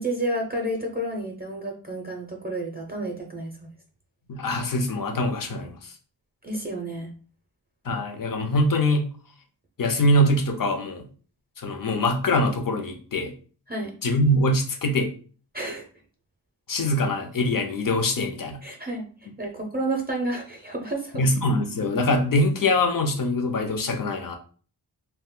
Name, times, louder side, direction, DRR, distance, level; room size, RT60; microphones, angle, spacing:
voice 1, 0.0-3.7 6.4-7.1 13.7-13.9 15.5-15.8 18.6-19.0 19.4-21.2, right 1 dB, 25° right, 0 dB, 0.6 m, -30 dB
voice 2, 4.3-5.9 7.8-9.1 9.8-11.1 11.6-13.3 14.0-15.1 16.7-18.6 21.1-24.4, left 1 dB, 55° left, 5 dB, 0.7 m, -23 dB
2.4 x 2.2 x 3.6 m, 0.40 s
wide cardioid pair, 80°, 40 cm